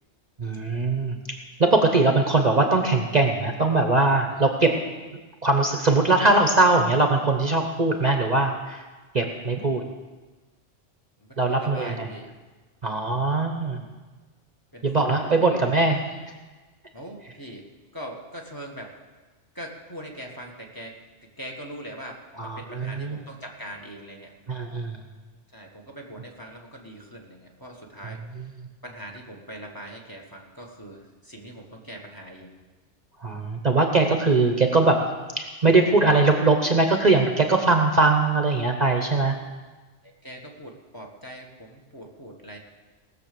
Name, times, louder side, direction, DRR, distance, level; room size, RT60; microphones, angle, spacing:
voice 1, 0.4-1.2 1.6-4.8 5.4-8.8 9.1-9.8 11.4-12.1 12.8-13.8 14.8-16.0 22.4-23.2 24.5-25.0 33.2-35.0 35.4-39.4, right 3 dB, 40° right, 4 dB, 1.0 m, -21 dB
voice 2, 11.3-12.3 14.7-15.1 16.9-17.6 17.9-18.9 19.5-20.9 21.4-24.3 25.5-28.4 28.8-32.5 40.0-42.6, equal, 20° left, 0 dB, 1.6 m, -41 dB
18.5 x 6.8 x 6.9 m, 1.3 s
omnidirectional pair, 1.2 m